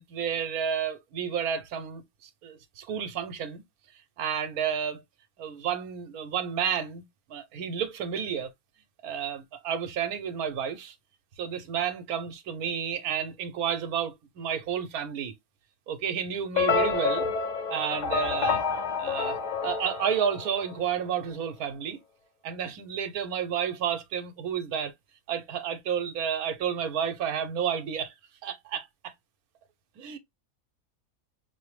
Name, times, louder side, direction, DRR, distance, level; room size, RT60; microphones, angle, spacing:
voice 1, 0.0-3.6 4.2-5.0 5.4-7.0 7.3-8.5 9.0-10.9 11.4-15.3 15.9-17.2 17.7-18.6 19.0-22.0 22.4-24.9 25.3-28.1 28.4-29.1 30.0-30.2, right 8 dB, 90° right, 1.2 m, -31 dB
sound 1, 16.6-20.9, left 5 dB, 60° left, 0.4 m, -28 dB
6.1 x 2.1 x 3.1 m
omnidirectional pair, 1.5 m